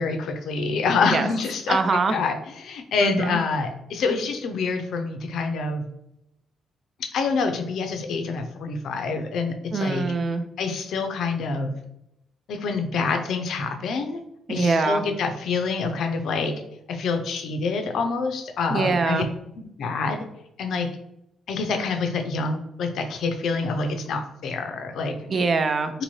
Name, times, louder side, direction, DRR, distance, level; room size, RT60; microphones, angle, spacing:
voice 1, 0.0-1.8 2.1-5.9 7.1-10.0 10.6-11.7 12.5-14.2 14.5-16.5 16.9-19.2 19.6-20.2 20.6-20.9 21.5-25.2 25.9-26.0, left 4 dB, 70° left, 5 dB, 0.4 m, -26 dB
voice 2, 1.7-2.1 3.0-3.4 9.7-10.4 14.5-15.0 18.7-19.3 25.3-25.9, right 4 dB, 40° right, 8 dB, 0.4 m, -23 dB
2.6 x 2.6 x 3.0 m, 0.83 s
cardioid pair, 90°, 0 cm